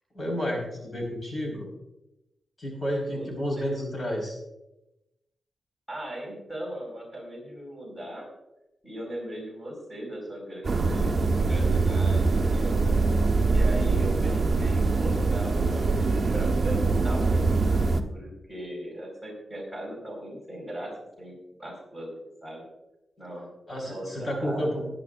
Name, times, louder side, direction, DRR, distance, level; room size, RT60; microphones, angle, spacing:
voice 1, 0.1-1.7 2.6-4.4 23.7-24.9, equal, 35° left, -2 dB, 4.5 m, -31 dB
voice 2, 5.9-8.3 8.8-13.0 13.5-21.3 21.6-22.1 22.4-22.7 23.2-23.5 23.8-24.9, right 1 dB, 5° left, -2 dB, 4.6 m, -38 dB
sound 1, 10.6-18.0, right 3 dB, 30° right, 1.1 m, -23 dB
22.0 x 10.0 x 2.5 m, 0.91 s
wide cardioid pair, 170°, 0 cm